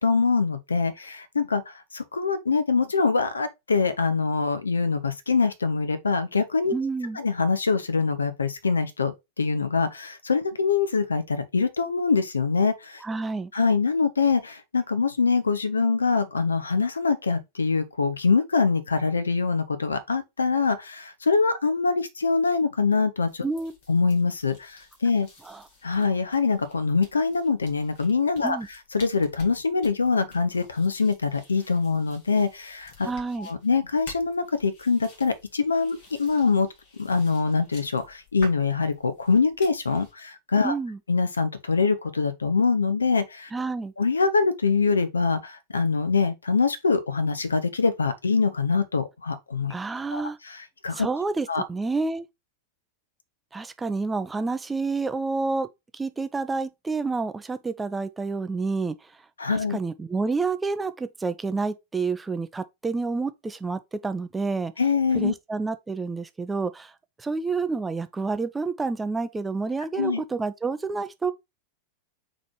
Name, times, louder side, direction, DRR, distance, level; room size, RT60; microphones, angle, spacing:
voice 1, 0.0-6.7 7.1-13.0 13.5-23.4 23.9-25.3 25.8-28.6 28.9-33.1 33.4-36.7 37.0-40.7 41.1-43.5 44.0-49.7 50.1-51.1 51.5-51.6 59.4-59.8 64.8-65.3 69.9-70.2, left 4 dB, 75° left, 0.6 m, -24 dB
voice 2, 6.7-7.2 13.0-13.5 23.4-23.7 25.5-25.6 28.4-28.7 33.0-33.5 40.6-41.0 43.5-43.9 49.7-50.4 50.9-52.3 53.5-55.7 55.9-59.1 59.5-64.7 65.2-66.9 67.2-71.3, right 4 dB, 10° right, 0.4 m, -29 dB
sound 1, 23.3-40.1, left 2 dB, 50° left, 1.7 m, -51 dB
4.1 x 3.1 x 4.2 m
figure-of-eight pair, 90°, 0 cm